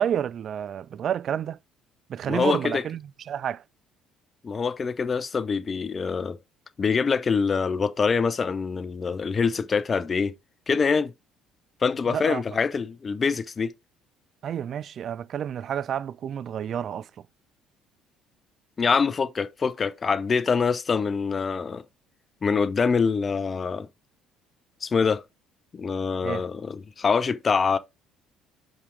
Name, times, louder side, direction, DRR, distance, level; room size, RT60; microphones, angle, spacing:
voice 1, 0.0-1.6 2.1-3.0 3.3-3.6 12.1-12.4 14.4-17.1 26.2-26.4, right 9 dB, 50° right, 0.3 m, -29 dB
voice 2, 2.3-2.8 4.4-6.4 6.8-10.3 10.7-11.1 11.8-13.7 18.8-21.8 22.4-23.9 24.8-25.2 25.7-27.8, left 5 dB, 35° left, 0.7 m, -25 dB
5.6 x 5.0 x 3.8 m
hypercardioid pair, 55°, 0 cm